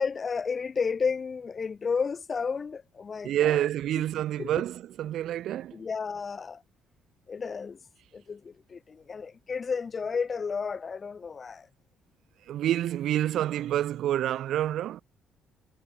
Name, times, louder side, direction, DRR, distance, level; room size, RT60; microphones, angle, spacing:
voice 1, 0.0-3.7 4.4-4.5 5.7-6.6 7.3-7.8 8.1-11.7, left 5 dB, 30° left, 2.5 m, -32 dB
voice 2, 3.2-5.8 12.5-15.0, right 12 dB, 65° right, 0.6 m, -28 dB
cardioid pair, 150°, 0 cm